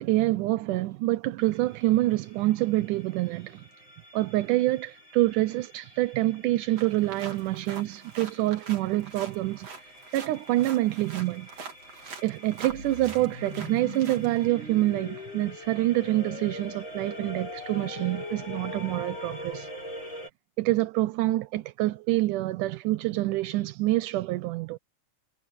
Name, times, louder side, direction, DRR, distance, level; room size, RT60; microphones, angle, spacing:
voice 1, 0.0-3.6 4.1-11.5 12.2-19.7 20.6-24.8, right 17 dB, 85° right, 2.3 m, -26 dB
sound 1, 1.4-20.3, equal, 35° left, 7.3 m, -45 dB
sound 2, 6.8-14.5, right 5 dB, 55° right, 4.3 m, -44 dB
sound 3, 12.7-19.5, left 6 dB, 70° left, 4.4 m, -44 dB
omnidirectional pair, 3.6 m